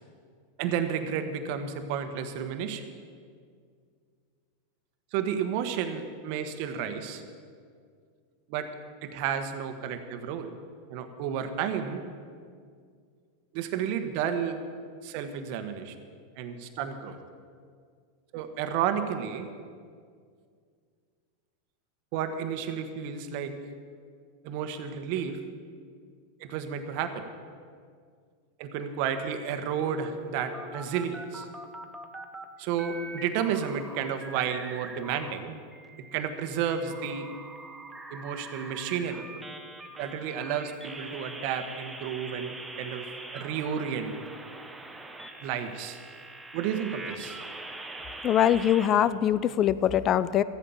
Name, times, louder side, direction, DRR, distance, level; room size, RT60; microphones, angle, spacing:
voice 1, 0.6-2.8 5.1-7.2 8.5-8.7 9.0-10.5 10.9-12.0 13.5-14.6 15.0-15.9 16.4-17.2 18.3-19.5 22.1-23.5 24.4-25.4 26.4-27.2 28.6-31.5 32.6-35.6 36.1-37.3 38.1-39.2 40.0-44.1 45.4-46.0 46.5-47.4, right 8 dB, 55° right, 8 dB, 1.3 m, -31 dB
sound 1, 29.8-32.4 32.8-35.3 35.7-48.9, right 2 dB, 10° right, 1.1 m, -43 dB
voice 2, 48.2-50.4, left 10 dB, 35° left, 16 dB, 0.5 m, -23 dB
14.0 x 8.8 x 7.1 m, 2.1 s
hypercardioid pair, 115°, 0 cm